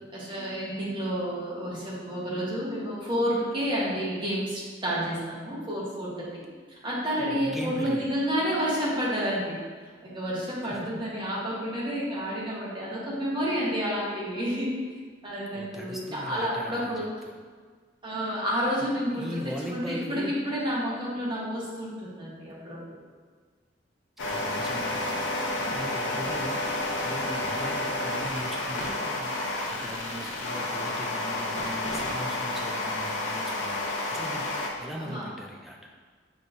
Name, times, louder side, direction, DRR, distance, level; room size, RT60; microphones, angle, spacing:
voice 1, 0.1-6.3 6.7-9.6 10.0-14.7 15.2-17.1 18.0-22.8 35.0-35.3, equal, 25° right, -7 dB, 1.2 m, -30 dB
voice 2, 7.2-8.1 10.7-10.9 15.5-17.4 18.8-20.3 24.2-25.3 25.7-35.8, equal, ahead, -1 dB, 0.4 m, -39 dB
sound 1, 24.2-34.7, left 2 dB, 90° left, 0.7 m, -30 dB
6.1 x 3.1 x 2.7 m, 1.6 s
head